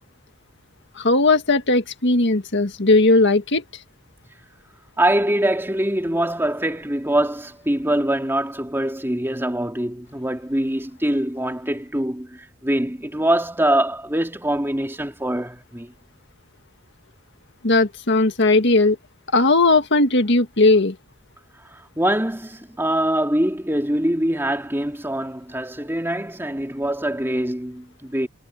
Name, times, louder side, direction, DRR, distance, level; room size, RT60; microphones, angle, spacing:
voice 1, 1.0-3.6 17.6-19.0 19.3-21.0, left 2 dB, 55° left, 1.8 m, -17 dB
voice 2, 5.0-15.9 21.7-28.3, right 1 dB, 10° right, 2.9 m, -23 dB
head